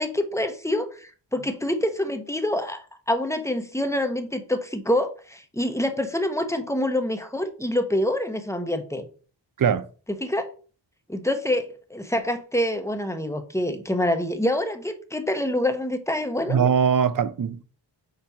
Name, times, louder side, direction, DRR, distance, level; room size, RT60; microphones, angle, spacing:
voice 1, 0.0-9.1 10.1-10.5 11.1-16.6, left 1 dB, 5° left, 0.9 m, -26 dB
voice 2, 16.5-17.6, right 7 dB, 45° right, 0.5 m, -21 dB
5.8 x 4.2 x 4.7 m
wide cardioid pair, 60°, 46 cm